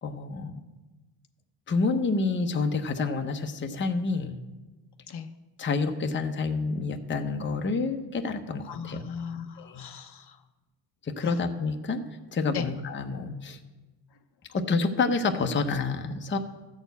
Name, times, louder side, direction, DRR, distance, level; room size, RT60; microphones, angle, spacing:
voice 1, 0.0-0.6 1.7-4.4 5.6-9.0 9.6-9.9 11.0-12.0 12.3-13.6 14.5-16.4, left 4 dB, 25° left, 5 dB, 0.7 m, -28 dB
voice 2, 8.7-10.4 12.5-12.7, left 7 dB, 55° left, 8 dB, 0.7 m, -37 dB
13.0 x 4.4 x 8.1 m, 1.2 s
cardioid pair, 105°, 47 cm